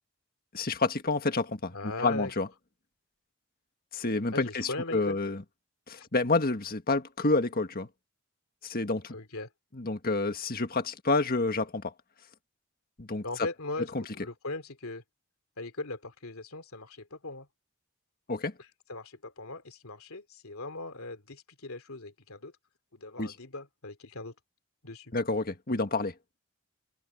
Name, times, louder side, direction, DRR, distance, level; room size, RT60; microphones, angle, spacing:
voice 1, 0.5-1.7 2.0-2.5 3.9-5.4 5.9-7.9 8.6-9.1 9.7-11.9 13.0-13.2 13.9-14.0 18.3-18.5 23.2-23.3 25.1-26.1, left 3 dB, 45° left, 1.7 m, -29 dB
voice 2, 1.7-2.3 4.3-5.2 6.0-6.1 9.1-9.5 13.2-15.0 15.6-17.5 18.9-22.5 22.9-24.3 24.8-25.1, left 2 dB, 85° left, 2.8 m, -39 dB
head